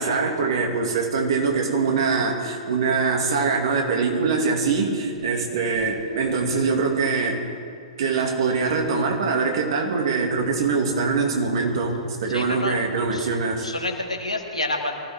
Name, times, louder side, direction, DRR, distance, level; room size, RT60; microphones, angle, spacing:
voice 1, 0.0-7.4 8.0-13.7, right 4 dB, 50° right, 1 dB, 2.5 m, -23 dB
voice 2, 12.3-12.8 13.1-13.3 13.6-14.9, left 2 dB, 85° left, 1 dB, 2.2 m, -29 dB
23.0 x 15.5 x 3.7 m, 2.4 s
figure-of-eight pair, 110°, 3 cm